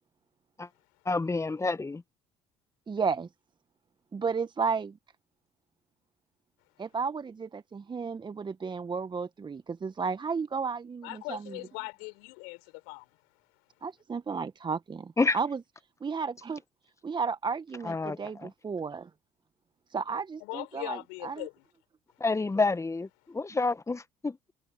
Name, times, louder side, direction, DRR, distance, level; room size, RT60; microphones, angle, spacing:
voice 1, 1.0-2.0 15.2-15.4 17.8-18.5 22.2-24.5, left 3 dB, 20° left, 1.3 m, -29 dB
voice 2, 2.9-3.3 4.1-4.9 6.8-11.4 13.8-15.6 16.0-16.6 17.0-19.1 19.9-21.5, right 5 dB, 30° right, 1.2 m, -33 dB
voice 3, 11.0-13.2 20.4-21.6, left 35 dB, 75° left, 6.3 m, -40 dB
hypercardioid pair, 60°, 16 cm